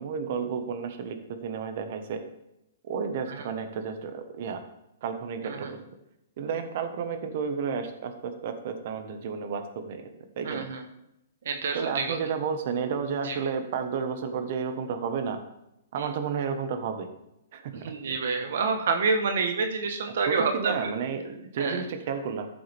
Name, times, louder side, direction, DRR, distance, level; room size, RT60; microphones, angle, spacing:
voice 1, 0.0-2.2 2.8-4.6 5.0-5.8 6.4-10.0 10.4-10.7 11.7-15.4 15.9-17.1 17.5-17.7 20.3-22.5, right 6 dB, 50° right, 7 dB, 1.3 m, -31 dB
voice 2, 5.4-5.7 10.4-10.8 11.4-12.2 13.2-13.4 15.9-16.1 17.8-20.9 21.6-21.8, right 4 dB, 70° right, 5 dB, 1.2 m, -28 dB
14.5 x 7.6 x 3.5 m, 0.85 s
hypercardioid pair, 150°, 0 cm